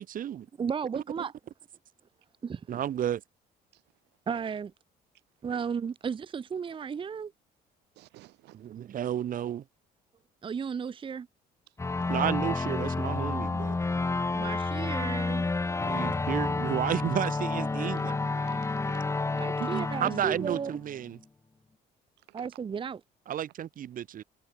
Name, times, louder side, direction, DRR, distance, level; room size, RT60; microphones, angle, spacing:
voice 1, 0.0-0.5 0.9-1.0 2.7-3.2 8.6-9.6 12.1-13.8 15.8-18.5 19.6-21.2 23.3-24.2, right 10 dB, 55° right, 2.4 m, -32 dB
voice 2, 0.6-1.3 2.4-2.7 4.3-4.7 5.4-7.3 10.4-11.3 14.3-15.5 19.4-20.8 22.3-23.0, right 6 dB, 30° right, 0.9 m, -34 dB
voice 3, 7.9-8.8 11.7-11.8 16.8-16.9 18.5-19.4 22.2-22.5 23.3-23.5, right 18 dB, 85° right, 6.1 m, -55 dB
sound 1, 11.8-21.1, left 3 dB, 15° left, 1.4 m, -30 dB
cardioid pair, 110°, 17 cm